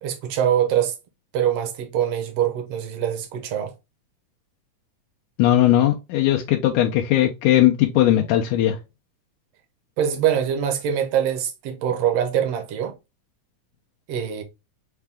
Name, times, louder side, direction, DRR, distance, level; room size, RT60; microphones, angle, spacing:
voice 1, 0.0-0.9 1.3-3.7 10.0-12.9 14.1-14.4, right 9 dB, 70° right, 1.5 m, -23 dB
voice 2, 5.4-8.8, left 13 dB, 80° left, 2.0 m, -18 dB
5.7 x 2.3 x 3.3 m
omnidirectional pair, 3.5 m